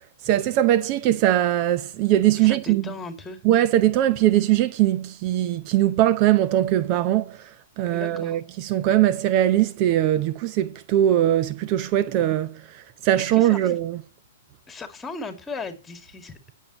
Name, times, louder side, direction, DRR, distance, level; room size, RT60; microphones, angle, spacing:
voice 1, 0.2-2.8 3.4-7.4 7.8-12.5 13.0-14.0, right 13 dB, 40° right, 0.7 m, -21 dB
voice 2, 2.4-3.4 7.9-8.4 13.2-13.7 14.7-16.5, left 3 dB, 15° left, 2.4 m, -37 dB
18.5 x 7.4 x 3.0 m
hypercardioid pair, 115°, 0 cm